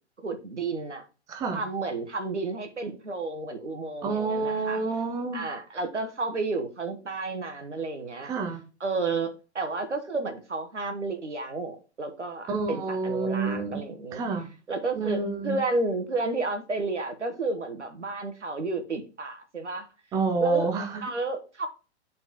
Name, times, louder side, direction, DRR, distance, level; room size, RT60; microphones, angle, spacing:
voice 1, 0.2-1.1 1.5-4.8 5.3-8.3 8.8-14.2 14.7-19.9 20.4-20.7 21.0-21.7, right 3 dB, 80° right, 1.2 m, -31 dB
voice 2, 1.3-1.6 4.0-5.4 8.2-8.6 12.5-13.8 14.1-14.5 14.9-15.6 20.1-21.0, right 4 dB, 10° right, 0.5 m, -28 dB
9.7 x 4.1 x 2.9 m
figure-of-eight pair, 115°, 34 cm